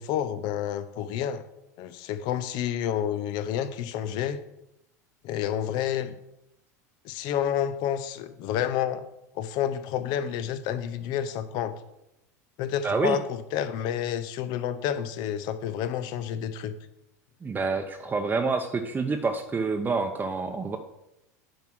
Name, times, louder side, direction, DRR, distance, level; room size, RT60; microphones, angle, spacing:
voice 1, 0.0-1.4 1.8-4.4 5.2-6.2 7.0-9.0 9.3-11.7 12.6-16.7, left 9 dB, 55° left, 11 dB, 0.8 m, -29 dB
voice 2, 12.8-13.2 17.4-20.8, right 4 dB, 20° right, 4 dB, 0.8 m, -27 dB
9.4 x 4.6 x 6.1 m, 0.87 s
hypercardioid pair, 90°, 9 cm